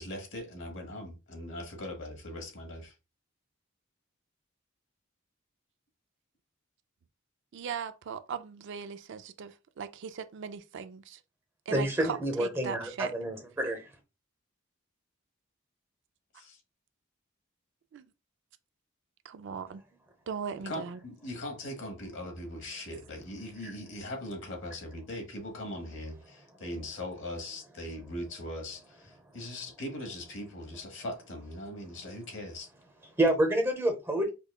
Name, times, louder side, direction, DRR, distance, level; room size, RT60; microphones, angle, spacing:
voice 1, 0.0-2.9 16.4-16.5 20.7-26.2 26.6-28.8 29.3-32.7, left 1 dB, 65° left, 1.1 m, -40 dB
voice 2, 7.5-11.2 11.7-13.1 17.9-18.0 19.2-19.8 20.3-21.0, right 6 dB, 60° right, 0.4 m, -39 dB
voice 3, 11.7-13.9 23.0-23.8 26.5-26.7 27.8-28.1 29.1-29.7 30.7-31.0 32.0-32.4 32.7-34.3, right 1 dB, 10° right, 0.8 m, -31 dB
5.2 x 2.2 x 2.2 m
head